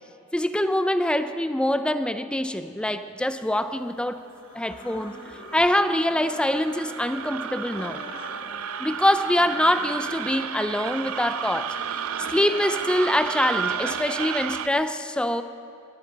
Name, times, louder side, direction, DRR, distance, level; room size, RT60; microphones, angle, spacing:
voice 1, 0.3-4.2 4.5-5.1 5.5-8.0 8.8-11.8 12.3-15.4, left 1 dB, 5° left, 10 dB, 0.4 m, -24 dB
sound 1, 4.3-14.2, left 2 dB, 45° left, 1.5 m, -44 dB
sound 2, 4.7-14.7, right 8 dB, 90° right, 0.5 m, -33 dB
20.0 x 12.5 x 4.0 m, 2.7 s
head